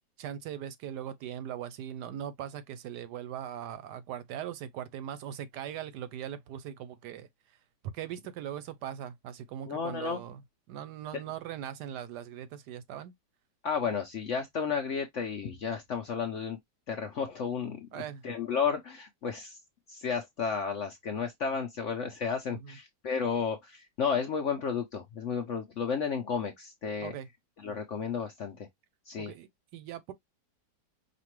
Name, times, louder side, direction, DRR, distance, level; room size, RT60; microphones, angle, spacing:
voice 1, 0.2-7.6 7.9-10.4 10.7-13.1 17.9-18.3 22.5-22.8 27.0-27.3 29.2-30.1, right 10 dB, 75° right, 1.1 m, -40 dB
voice 2, 9.7-10.2 13.6-16.6 16.9-17.9 18.2-19.6 19.9-27.1 27.6-28.7 29.1-29.3, left 6 dB, 65° left, 0.7 m, -32 dB
5.1 x 2.5 x 3.0 m
omnidirectional pair, 1.9 m